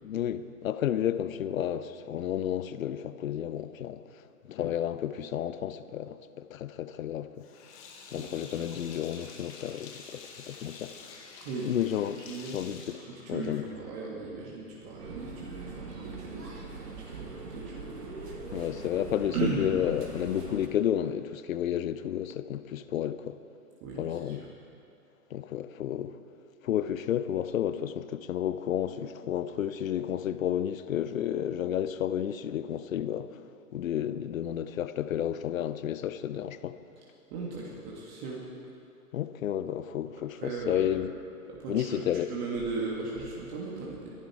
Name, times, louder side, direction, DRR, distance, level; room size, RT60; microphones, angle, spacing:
voice 1, 0.0-4.0 4.5-7.5 8.1-11.1 11.6-12.2 12.5-12.8 13.3-13.6 18.5-23.4 24.0-24.4 25.3-26.2 26.6-33.4 33.7-36.8 39.1-41.1 41.7-42.3, left 10 dB, 60° left, 0.9 m, -31 dB
Sink (filling or washing), 7.4-13.8, left 4 dB, 25° left, 2.3 m, -48 dB
voice 2, 8.1-8.7 11.4-11.7 12.2-12.6 13.1-17.9 19.3-19.7 23.8-24.5 37.3-38.4 40.3-40.9 41.5-44.1, right 4 dB, 35° right, 2.8 m, -37 dB
sound 1, 15.0-20.7, right 3 dB, 85° right, 2.7 m, -42 dB
23.0 x 11.5 x 4.8 m
hypercardioid pair, 130°, 47 cm